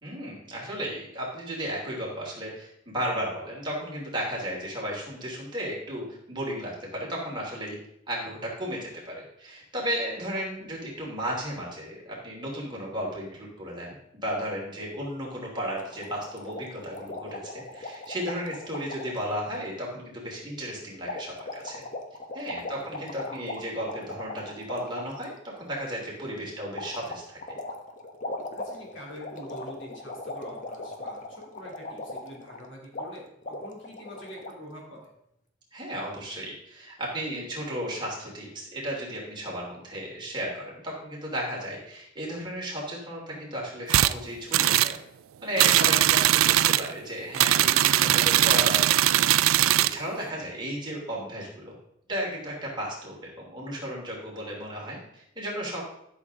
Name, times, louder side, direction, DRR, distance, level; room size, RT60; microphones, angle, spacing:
voice 1, 0.0-7.8 8.1-13.9 14.2-21.8 22.3-27.4 35.7-45.0 45.4-49.2 49.5-51.7 52.1-55.8, equal, 25° right, -4 dB, 3.1 m, -34 dB
sound 1, 15.8-19.4 21.0-25.3 26.8-32.7 32.9-33.1 33.4-34.5, left 2 dB, 40° left, 1.0 m, -38 dB
voice 2, 22.6-22.9 28.5-35.1, equal, 65° left, -2 dB, 3.0 m, -45 dB
sound 2, 43.9-44.1 44.5-45.0 45.6-46.9 47.3-50.0, right 13 dB, 85° right, 0.4 m, -20 dB
12.0 x 6.7 x 3.7 m, 0.77 s
head